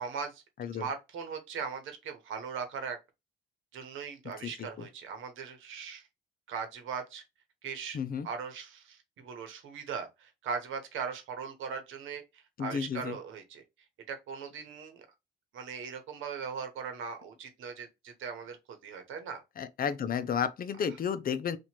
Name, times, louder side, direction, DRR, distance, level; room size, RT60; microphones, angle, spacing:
voice 1, 0.0-0.4 0.8-3.0 3.7-6.1 6.5-7.2 7.6-8.0 8.2-13.6 14.1-15.0 15.5-19.4, right 6 dB, 80° right, 1.0 m, -39 dB
voice 2, 4.4-4.9 7.9-8.3 12.6-13.2 19.6-21.6, left 7 dB, 45° left, 0.6 m, -32 dB
2.9 x 2.5 x 4.3 m
cardioid pair, 90°, 20 cm